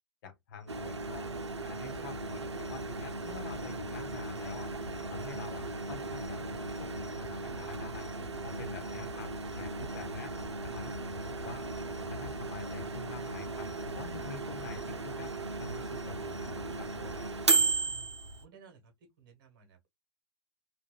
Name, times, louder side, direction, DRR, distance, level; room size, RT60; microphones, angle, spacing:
voice 1, 0.2-1.3 1.6-4.7 5.1-6.4 6.8-8.1 8.4-9.3 9.5-10.3 10.6-11.7 12.1-15.3 15.6-17.3, left 4 dB, 45° left, 1.1 m, -47 dB
sound 1, 0.6-17.7, left 3 dB, 85° left, 0.4 m, -51 dB
Microwave oven, 0.7-18.4, right 3 dB, 80° right, 0.5 m, -36 dB
voice 2, 18.4-18.9 19.2-19.9, right 6 dB, 50° right, 1.4 m, -57 dB
3.9 x 2.5 x 2.2 m
figure-of-eight pair, 105°, 14 cm